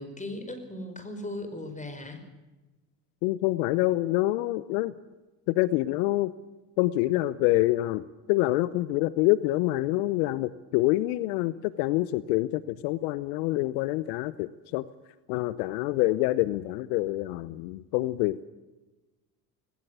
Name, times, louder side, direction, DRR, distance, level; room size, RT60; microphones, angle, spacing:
voice 1, 0.0-2.2, left 1 dB, 15° left, 7 dB, 5.0 m, -37 dB
voice 2, 3.2-4.9 5.5-6.3 6.8-14.8 15.3-18.4, left 17 dB, 70° left, 17 dB, 0.9 m, -26 dB
19.0 x 17.5 x 8.2 m, 1.1 s
hypercardioid pair, 80°, 48 cm